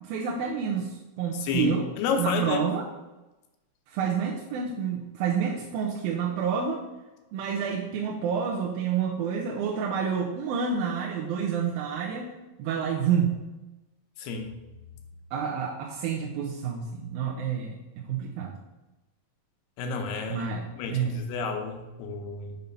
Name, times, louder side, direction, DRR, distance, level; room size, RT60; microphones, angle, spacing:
voice 1, 0.0-1.8 2.2-2.9 3.9-6.8 7.3-12.3 12.6-13.4 15.3-17.8 18.1-18.6 20.3-20.6 20.9-21.2, right 7 dB, 75° right, -1 dB, 2.4 m, -28 dB
voice 2, 1.3-2.6 14.2-14.5 19.8-20.5 20.8-22.6, left 5 dB, 90° left, 4 dB, 3.0 m, -30 dB
6.9 x 5.7 x 5.3 m, 1.0 s
omnidirectional pair, 4.5 m